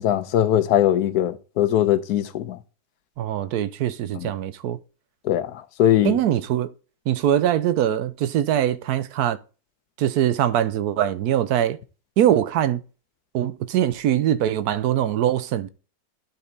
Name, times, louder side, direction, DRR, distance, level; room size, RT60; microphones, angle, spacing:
voice 1, 0.0-2.6 4.1-4.3 5.2-5.5 5.8-6.2, left 11 dB, 90° left, 1.2 m, -20 dB
voice 2, 3.2-4.8 6.0-6.7 7.1-9.4 10.0-11.8 12.2-12.8 13.3-15.7, right 11 dB, 90° right, 1.2 m, -22 dB
11.5 x 4.3 x 4.0 m
omnidirectional pair, 1.6 m